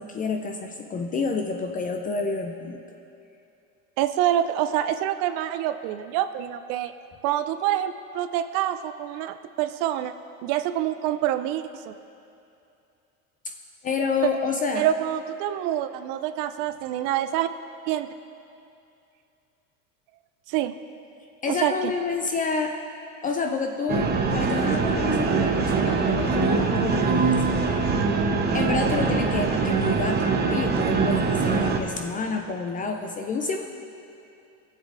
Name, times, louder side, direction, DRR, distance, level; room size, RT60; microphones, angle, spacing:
voice 1, 0.0-2.8 13.8-14.9 21.4-22.8 23.2-27.4 28.5-33.7, left 4 dB, 20° left, 4 dB, 0.3 m, -29 dB
voice 2, 4.0-6.9 7.2-10.1 10.4-11.9 14.2-14.3 14.7-17.5 17.9-18.1 20.5-20.7 21.5-21.9, right 12 dB, 50° right, 11 dB, 0.5 m, -26 dB
sound 1, 23.9-31.8, right 4 dB, 25° right, 0.8 m, -23 dB
16.0 x 7.5 x 2.5 m, 2.6 s
supercardioid pair, 105°, 43 cm